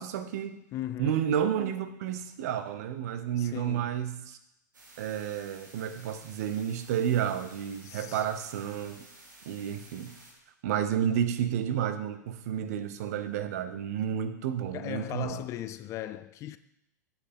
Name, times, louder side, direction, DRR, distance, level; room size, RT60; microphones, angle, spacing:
voice 1, 0.0-0.6 1.0-4.4 5.0-9.0 9.5-10.1 10.6-15.4, right 9 dB, 55° right, 0.8 m, -31 dB
voice 2, 0.7-1.2 3.4-3.9 7.8-8.3 14.7-16.6, left 13 dB, 30° left, 0.4 m, -38 dB
sound 1, 4.7-10.3, right 2 dB, 80° right, 1.9 m, -53 dB
8.2 x 6.5 x 3.6 m
figure-of-eight pair, 100°, 10 cm